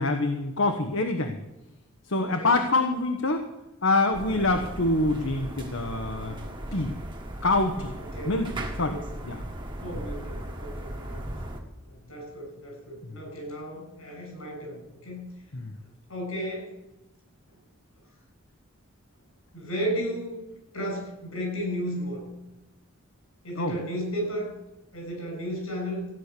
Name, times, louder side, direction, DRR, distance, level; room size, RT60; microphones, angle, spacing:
voice 1, 0.0-1.4 2.1-3.5 3.8-6.4 6.7-6.9 7.4-7.9 8.3-8.5 8.8-9.0 9.2-9.4 13.1-13.2 15.5-15.7 23.6-23.8, left 2 dB, 70° left, 5 dB, 1.2 m, -25 dB
voice 2, 2.2-2.5 8.1-8.4 8.8-9.0 9.8-11.3 11.9-15.3 16.1-16.7 19.5-22.3 23.4-24.5 24.9-26.1, equal, 85° left, 1 dB, 6.6 m, -34 dB
sound 1, 4.1-11.6, right 1 dB, 20° right, 1.7 m, -37 dB
15.5 x 9.9 x 6.8 m, 0.98 s
head